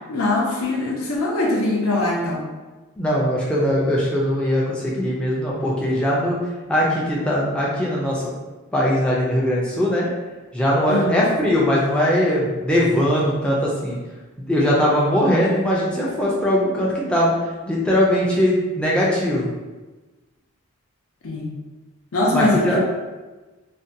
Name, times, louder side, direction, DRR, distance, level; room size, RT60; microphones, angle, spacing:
voice 1, 0.1-2.4 10.9-11.2 21.2-21.5 22.1-22.8, left 2 dB, 80° left, -2 dB, 0.6 m, -22 dB
voice 2, 3.0-6.4 6.7-8.2 8.7-10.1 10.5-14.0 14.4-17.3 17.7-19.5 22.3-22.8, equal, 5° left, -5 dB, 0.3 m, -20 dB
2.5 x 2.1 x 2.6 m, 1.2 s
head